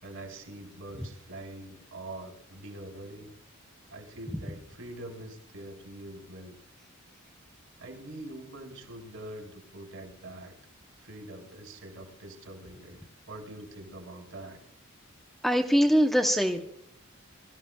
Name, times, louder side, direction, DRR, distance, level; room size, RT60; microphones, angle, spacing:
voice 1, 0.0-3.3 3.9-6.6 7.8-10.5 11.0-13.0 13.3-14.6, right 1 dB, 70° right, 2 dB, 3.6 m, -44 dB
voice 2, 15.4-16.6, equal, ahead, 3 dB, 0.7 m, -23 dB
22.5 x 13.5 x 2.2 m, 0.71 s
head